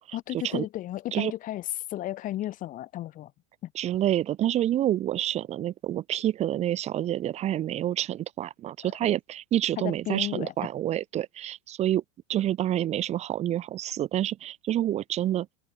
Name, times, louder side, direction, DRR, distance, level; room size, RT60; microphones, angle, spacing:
voice 1, 0.1-3.3 3.6-3.7 8.8-8.9 9.8-10.5, left 14 dB, 40° left, 3.3 m, -34 dB
voice 2, 3.8-12.0 12.3-15.5, right 12 dB, 30° right, 0.9 m, -28 dB
open air
supercardioid pair, 130°, 21 cm